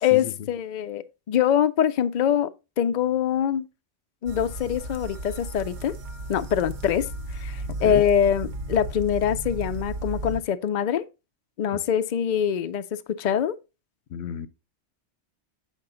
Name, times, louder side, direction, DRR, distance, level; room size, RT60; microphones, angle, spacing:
voice 1, 0.0-2.5 2.8-3.7 4.2-5.9 6.3-11.0 11.6-13.6, left 9 dB, 55° left, 0.5 m, -24 dB
sound 1, 4.3-10.4, right 2 dB, 50° right, 0.7 m, -34 dB
voice 2, 14.1-14.5, left 8 dB, 70° left, 0.9 m, -32 dB
7.3 x 5.2 x 3.7 m
omnidirectional pair, 1.1 m